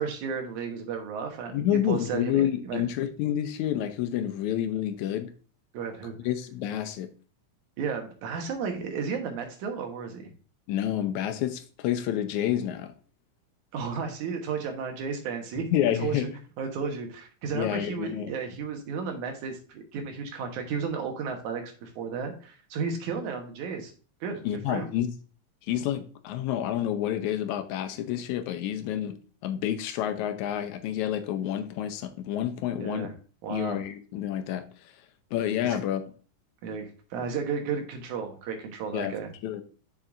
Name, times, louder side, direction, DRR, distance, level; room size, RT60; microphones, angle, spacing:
voice 1, 0.0-2.8 5.7-6.2 7.8-10.3 13.7-15.7 16.0-16.3 16.6-23.9 24.2-24.4 24.7-24.9 32.8-33.1 33.4-33.8 35.6-35.8 36.6-39.3, right 5 dB, 90° right, 2.6 m, -33 dB
voice 2, 1.5-5.3 6.3-7.1 10.7-12.9 15.7-16.3 17.5-18.3 24.4-25.1 25.7-29.2 29.4-33.1 33.5-34.7 35.3-36.0 38.9-39.2 39.4-39.6, left 11 dB, 85° left, 2.1 m, -29 dB
7.2 x 6.5 x 2.5 m
omnidirectional pair, 3.3 m